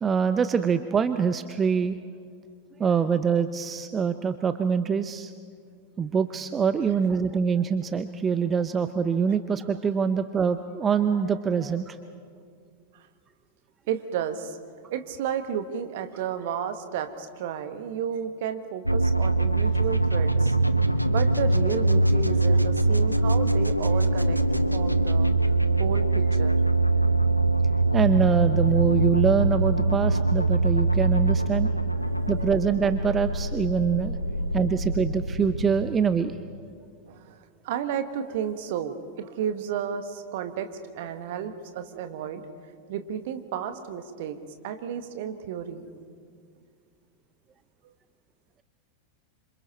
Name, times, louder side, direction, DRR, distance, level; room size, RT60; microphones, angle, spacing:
voice 1, 0.0-2.0 2.8-5.3 6.0-12.0 27.0-27.3 27.9-31.7 32.3-34.2 34.5-36.4, right 6 dB, 20° right, 11 dB, 0.7 m, -24 dB
voice 2, 13.9-14.6 14.9-20.5 21.1-25.3 25.8-26.6 32.0-32.5 37.1-42.4 42.9-44.4 44.6-45.9, right 8 dB, 50° right, 9 dB, 1.6 m, -32 dB
sound 1, 18.8-36.6, right 2 dB, 90° left, 0.8 m, -23 dB
27.5 x 26.0 x 4.3 m, 2.2 s
figure-of-eight pair, 90°, 0 cm